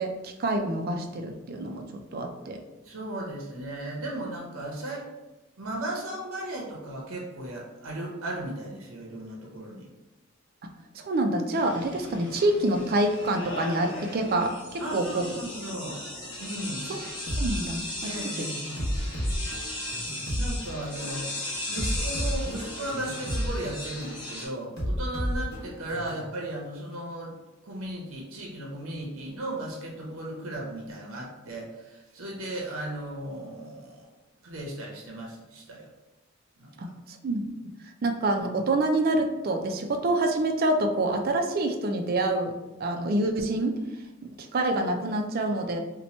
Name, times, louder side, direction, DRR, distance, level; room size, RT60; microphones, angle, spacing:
voice 1, 0.0-1.8 2.1-2.6 10.9-15.3 16.9-17.0 17.4-18.5 36.8-37.4 38.0-42.5 42.8-43.8 44.2-45.8, right 2 dB, 45° right, 5 dB, 0.4 m, -27 dB
voice 2, 2.8-5.1 5.6-9.9 14.8-16.0 16.4-16.9 18.0-18.9 20.3-21.3 21.7-27.3 27.6-34.1 34.4-35.9 36.6-36.7, right 1 dB, 85° right, -1 dB, 0.7 m, -36 dB
sound 1, 11.5-24.5, left 1 dB, 20° left, 0.9 m, -37 dB
sound 2, 17.3-17.5 18.0-18.2 18.8-20.5 21.0-21.2 21.8-23.5 24.0-24.2 24.8-26.3, equal, 50° left, 0.9 m, -31 dB
2.8 x 2.2 x 4.1 m, 1.1 s
head